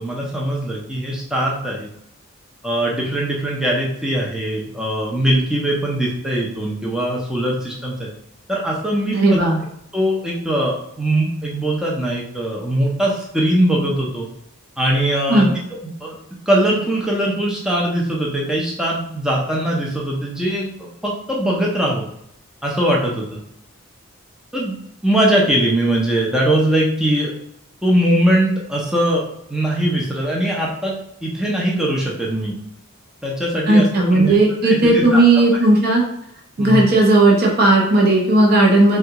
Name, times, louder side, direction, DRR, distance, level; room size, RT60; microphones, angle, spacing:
voice 1, 0.0-1.9 2.6-8.1 8.5-9.4 9.9-14.3 14.8-15.5 15.8-16.2 16.5-22.1 22.6-23.4 24.5-24.7 25.0-27.3 27.8-29.2 29.5-30.9 31.2-32.6 33.2-33.9 34.1-35.2 36.6-36.8, right 1 dB, 5° right, -3 dB, 0.5 m, -21 dB
voice 2, 9.1-9.6 15.3-15.6 33.7-36.0 36.6-39.0, right 2 dB, 45° right, -2 dB, 0.6 m, -14 dB
3.4 x 2.3 x 2.8 m, 0.74 s
head